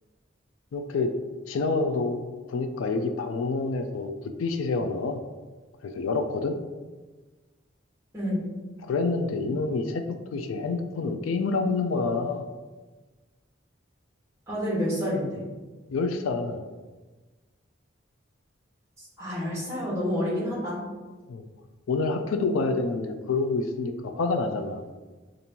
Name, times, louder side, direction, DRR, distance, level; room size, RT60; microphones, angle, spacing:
voice 1, 0.7-1.1 1.5-2.2 2.5-4.1 4.4-5.2 5.8-6.6 8.8-10.0 10.3-12.4 15.9-16.6 21.3-21.4 21.9-24.8, left 3 dB, 85° left, 7 dB, 0.4 m, -27 dB
voice 2, 8.1-8.4 14.5-15.4 19.0-20.8, equal, 15° right, -7 dB, 1.4 m, -29 dB
5.2 x 2.5 x 2.9 m, 1.3 s
head